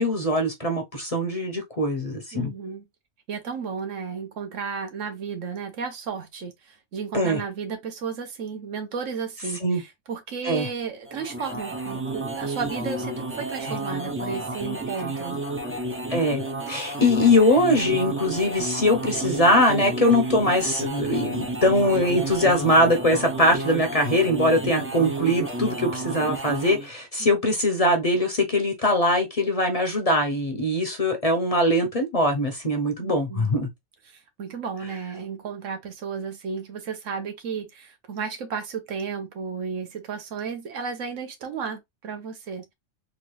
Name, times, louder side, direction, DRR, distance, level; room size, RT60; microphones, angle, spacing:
voice 1, 0.0-2.5 7.1-7.4 9.6-9.8 10.4-10.7 13.6-13.7 16.1-33.7, left 1 dB, 35° left, 0.7 m, -22 dB
voice 2, 2.3-2.8 3.3-15.4 27.2-27.3 33.0-33.5 34.1-42.7, right 6 dB, 75° right, 1.3 m, -33 dB
sound 1, 11.1-26.9, right 2 dB, 20° right, 0.3 m, -31 dB
3.9 x 2.5 x 3.1 m
omnidirectional pair, 1.3 m